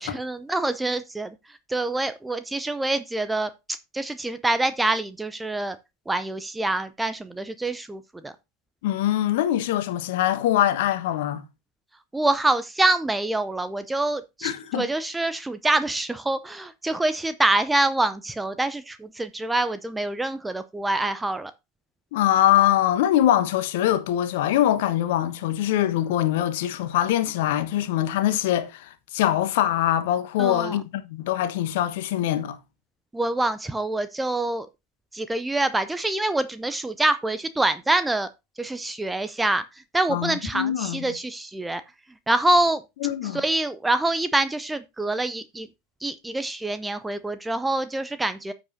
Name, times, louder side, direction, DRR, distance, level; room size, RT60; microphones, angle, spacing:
voice 1, 0.0-1.3 1.7-5.8 6.1-8.3 12.1-21.5 30.4-30.8 33.1-34.7 35.1-38.3 38.6-39.6 39.9-41.8 42.3-42.8 43.3-45.7 46.0-48.5, right 2 dB, 10° right, 0.5 m, -25 dB
voice 2, 8.8-11.4 14.4-14.9 22.1-32.6 40.1-41.2 43.0-43.4, left 12 dB, 55° left, 1.2 m, -23 dB
14.0 x 5.3 x 2.7 m
figure-of-eight pair, 80°, 0 cm